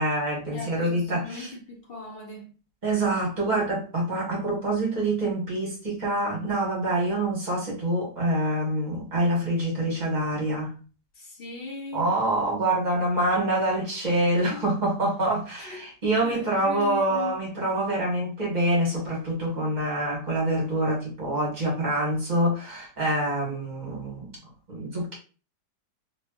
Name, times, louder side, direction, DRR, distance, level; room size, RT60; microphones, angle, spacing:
voice 1, 0.0-1.5 2.8-10.7 11.9-24.3 24.7-25.1, right 1 dB, 25° right, 1.5 m, -26 dB
voice 2, 0.5-2.5 11.2-12.1 14.4-14.6 15.6-15.9 16.2-17.3, left 3 dB, 50° left, 0.7 m, -38 dB
3.2 x 3.1 x 2.3 m
omnidirectional pair, 1.8 m